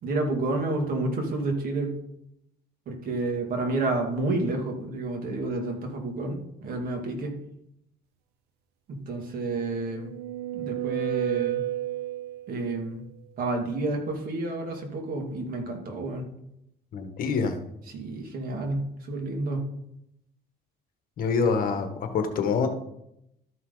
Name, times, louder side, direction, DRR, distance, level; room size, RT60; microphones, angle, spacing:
voice 1, 0.0-2.0 2.9-7.4 8.9-10.1 10.5-11.6 12.5-13.0 13.4-16.3 17.9-19.7, right 2 dB, 60° right, 3 dB, 2.2 m, -30 dB
sound 1, 9.6-12.7, right 14 dB, 75° right, 0.7 m, -31 dB
voice 2, 16.9-17.6 21.2-22.7, left 5 dB, 55° left, 6 dB, 1.4 m, -26 dB
13.0 x 5.6 x 3.9 m, 0.79 s
cardioid pair, 110°, 17 cm